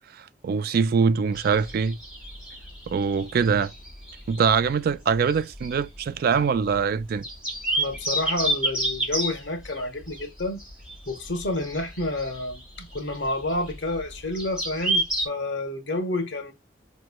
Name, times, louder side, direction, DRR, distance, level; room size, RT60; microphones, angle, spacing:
voice 1, 0.4-2.0 2.9-3.7 4.3-7.2, right 6 dB, 55° right, 0.3 m, -23 dB
sound 1, 1.3-15.3, right 1 dB, 5° right, 2.8 m, -31 dB
voice 2, 7.7-10.6 11.1-16.5, left 2 dB, 80° left, 1.0 m, -29 dB
5.1 x 3.0 x 2.2 m
head